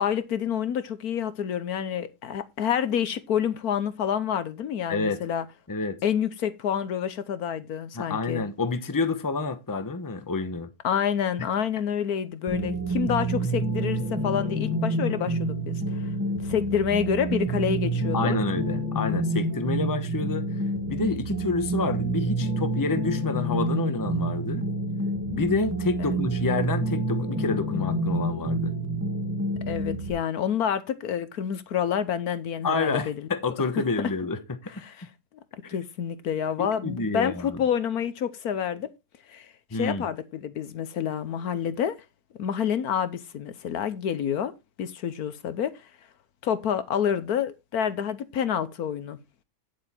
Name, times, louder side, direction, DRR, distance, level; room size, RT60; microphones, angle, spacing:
voice 1, 0.0-5.4 6.0-8.4 10.8-15.8 16.4-18.4 26.0-26.2 29.7-33.3 34.8-35.1 35.7-38.9 39.3-42.0 42.4-44.5 44.8-45.7 46.4-49.2, left 8 dB, 70° left, 1.3 m, -28 dB
voice 2, 4.9-5.2 5.7-6.0 7.9-10.7 18.1-20.5 20.9-24.6 25.3-28.7 32.6-34.4 36.6-37.6 39.7-40.0, left 3 dB, 15° left, 0.9 m, -28 dB
sound 1, 12.5-30.1, right 2 dB, 10° right, 1.5 m, -28 dB
9.6 x 7.7 x 4.3 m
omnidirectional pair, 1.7 m